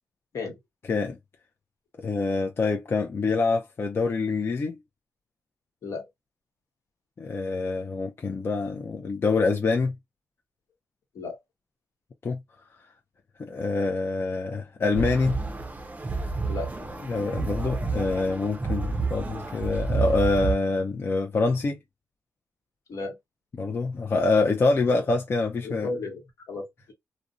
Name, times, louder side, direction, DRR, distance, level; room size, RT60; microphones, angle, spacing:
voice 1, 2.0-4.8 7.2-9.9 12.2-12.4 13.4-15.4 17.1-21.8 23.5-25.9, left 3 dB, 45° left, 0.4 m, -25 dB
sound 1, 14.9-20.5, right 4 dB, 25° right, 0.5 m, -30 dB
voice 2, 25.6-26.9, left 3 dB, 75° left, 1.1 m, -34 dB
2.5 x 2.1 x 2.5 m
cardioid pair, 75°, 6 cm